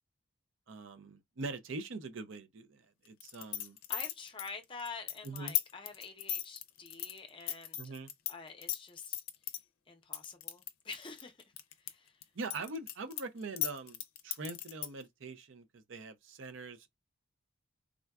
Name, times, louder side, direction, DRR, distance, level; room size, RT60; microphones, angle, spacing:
voice 1, 0.7-3.8 5.2-5.5 7.8-8.1 12.3-16.9, right 3 dB, 65° right, 0.5 m, -43 dB
sound 1, 3.2-8.3 8.6-9.6 10.1-11.9 12.2-15.0, left 13 dB, 85° left, 0.5 m, -36 dB
voice 2, 3.9-7.9 8.3-9.2 9.9-11.4 11.8-12.3, left 4 dB, 25° left, 0.6 m, -47 dB
3.6 x 2.2 x 2.3 m
head